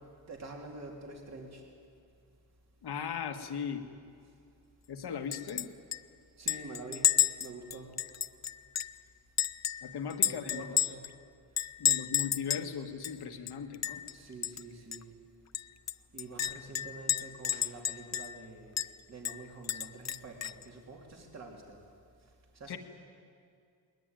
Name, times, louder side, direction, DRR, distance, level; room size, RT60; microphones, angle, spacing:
voice 1, 0.3-1.6 6.4-7.1 7.4-8.0 10.2-11.0 14.0-15.1 16.1-18.8 19.1-21.8 22.5-22.8, right 3 dB, 40° right, 0 dB, 3.5 m, -47 dB
voice 2, 2.8-3.9 4.9-5.7 9.8-10.7 11.8-14.0 22.7-22.8, left 7 dB, 75° left, 6 dB, 1.8 m, -38 dB
Chink clink, 5.3-5.7 5.9-6.0 6.5-9.0 9.4-11.1 11.6-12.7 13.0-13.1 13.5-14.1 14.4-14.6 14.9-15.0 15.5-18.4 18.8-18.9 19.2-20.6, left 10 dB, 45° left, 0.5 m, -31 dB
21.5 x 20.5 x 9.2 m, 2.3 s
wide cardioid pair, 125°, 40 cm